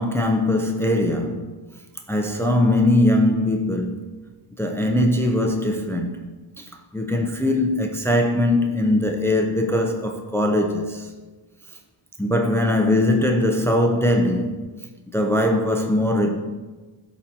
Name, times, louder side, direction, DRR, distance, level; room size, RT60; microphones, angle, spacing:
voice 1, 0.0-1.5 2.1-4.0 4.6-6.3 6.6-6.7 6.9-11.1 12.2-14.6 15.1-16.3, left 1 dB, 5° left, 0.6 m, -21 dB
11.5 x 4.0 x 2.8 m
wide cardioid pair, 55°, 47 cm